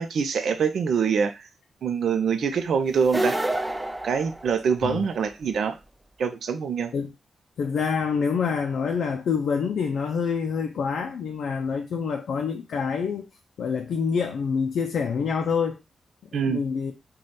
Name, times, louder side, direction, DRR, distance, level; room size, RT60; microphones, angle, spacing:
voice 1, 0.0-1.5 1.8-3.4 4.0-5.8 6.2-6.9 16.3-16.6, right 6 dB, 80° right, 0.5 m, -25 dB
sound 1, 3.0-5.0, right 1 dB, 15° right, 0.4 m, -28 dB
voice 2, 7.6-13.3 13.6-15.8 16.4-16.9, left 6 dB, 85° left, 0.4 m, -26 dB
3.2 x 2.2 x 4.1 m
cardioid pair, 90°, 0 cm